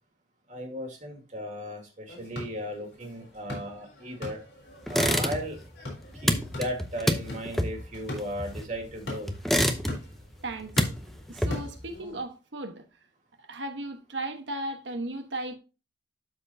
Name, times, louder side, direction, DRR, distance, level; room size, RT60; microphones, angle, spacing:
voice 1, 0.5-4.4 4.9-5.6 6.2-9.3, equal, 40° right, 2.0 m, -36 dB
sound 1, 2.1-12.2, left 2 dB, 70° left, 4.0 m, -42 dB
sound 2, 4.9-5.7 5.9-8.9 9.3-10.2 10.5-11.9, equal, ahead, 0.7 m, -27 dB
voice 2, 10.4-10.7 11.3-12.8 13.5-15.6, right 2 dB, 85° right, 1.2 m, -35 dB
12.5 x 4.4 x 2.7 m
head